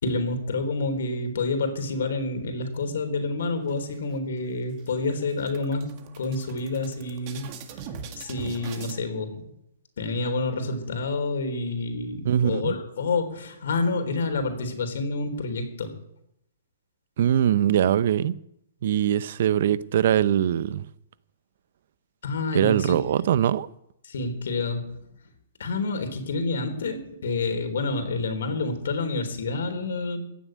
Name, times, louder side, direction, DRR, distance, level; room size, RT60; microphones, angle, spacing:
voice 1, 0.0-5.9 6.2-7.5 8.2-9.5 10.0-15.9 22.2-23.0 24.0-24.9 25.6-30.2, left 3 dB, 75° left, 3.7 m, -28 dB
sound 1, 3.7-4.4 4.8-4.9 5.2-9.0, right 6 dB, 35° right, 1.9 m, -41 dB
voice 2, 12.2-12.7 17.2-18.3 18.8-20.8 22.5-23.7, right 10 dB, 55° right, 0.7 m, -22 dB
15.5 x 7.5 x 9.3 m
hypercardioid pair, 155°, 0 cm